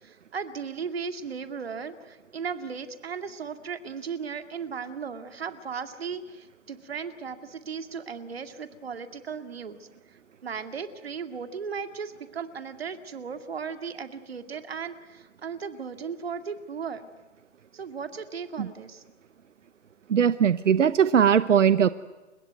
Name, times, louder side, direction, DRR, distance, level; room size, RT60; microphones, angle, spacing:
voice 1, 0.0-9.9 10.4-17.0 17.7-19.0, right 6 dB, 55° right, 9 dB, 2.3 m, -36 dB
voice 2, 20.1-21.9, right 8 dB, 90° right, 14 dB, 1.0 m, -20 dB
30.0 x 16.5 x 9.4 m, 1.2 s
hypercardioid pair, 175°, 36 cm